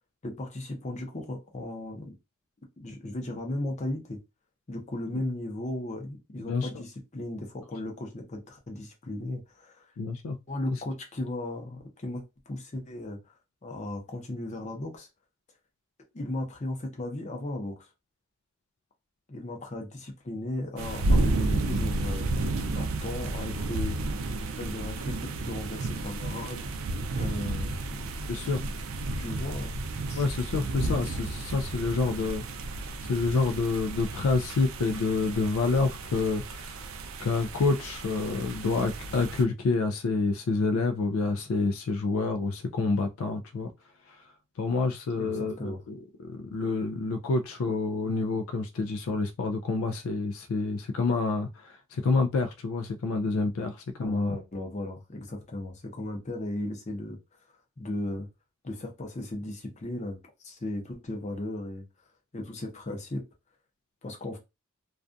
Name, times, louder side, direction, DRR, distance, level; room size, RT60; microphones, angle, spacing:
voice 1, 0.2-2.1 2.8-4.2 4.7-9.9 10.5-13.2 13.6-15.1 16.1-17.9 19.3-22.3 22.7-24.0 24.6-26.6 27.2-28.1 28.4-28.5 29.1-29.7 30.1-30.2 45.2-45.8 54.0-57.2 57.8-58.3 58.6-61.8 62.3-63.2 64.0-64.4, left 1 dB, 35° left, 0.6 m, -36 dB
voice 2, 6.4-6.7 10.0-10.4 28.3-28.6 30.2-32.6 33.0-36.8 37.2-43.7 44.6-54.4, left 3 dB, 75° left, 0.4 m, -28 dB
sound 1, 20.8-39.4, right 2 dB, 65° right, 0.4 m, -32 dB
2.3 x 2.2 x 2.5 m
head